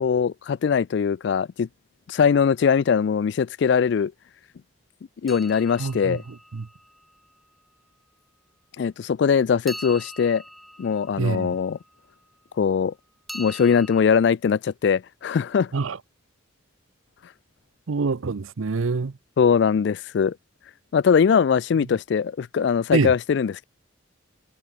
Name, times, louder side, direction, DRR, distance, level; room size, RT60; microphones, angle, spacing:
voice 1, 0.0-1.7 2.1-4.1 5.2-6.2 8.8-10.4 10.8-11.8 12.6-12.9 13.3-15.7 19.4-20.3 20.9-23.6, left 6 dB, 60° left, 0.3 m, -21 dB
sound 1, 5.3-7.3 9.7-12.0 13.3-14.0, equal, ahead, 1.9 m, -42 dB
voice 2, 5.8-6.7 11.2-11.6 15.7-16.0 17.9-19.1 22.9-23.1, right 4 dB, 90° right, 0.6 m, -26 dB
head